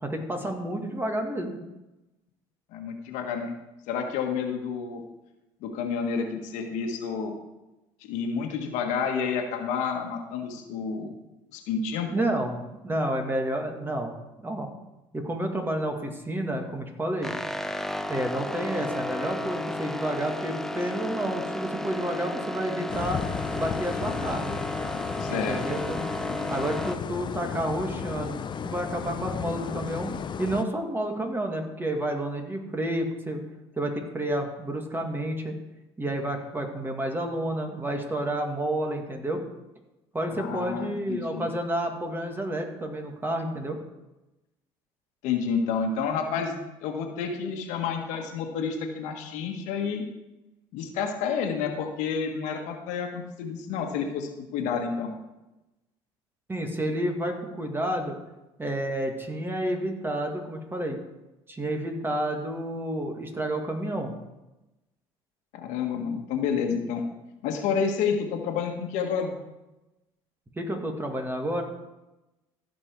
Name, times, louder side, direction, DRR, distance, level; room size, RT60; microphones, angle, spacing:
voice 1, 0.0-1.6 12.1-12.5 12.8-14.7 15.1-17.3 18.1-23.2 23.5-24.6 25.3-26.0 26.5-33.4 33.8-35.5 36.0-39.4 40.1-43.8 56.5-58.2 58.6-61.0 61.5-64.1 70.6-71.6, right 1 dB, 15° right, 3 dB, 2.1 m, -30 dB
voice 2, 2.7-3.6 3.9-5.0 5.6-7.4 8.0-11.1 11.5-12.2 25.2-25.6 40.3-41.5 45.2-50.0 50.7-55.1 65.5-67.0 67.4-69.3, left 6 dB, 75° left, 3 dB, 1.6 m, -29 dB
sound 1, 17.2-27.0, left 1 dB, 5° left, 0.7 m, -33 dB
sound 2, 22.9-30.6, left 7 dB, 40° left, 0.6 m, -34 dB
15.0 x 5.3 x 4.7 m, 0.99 s
supercardioid pair, 85°, 12 cm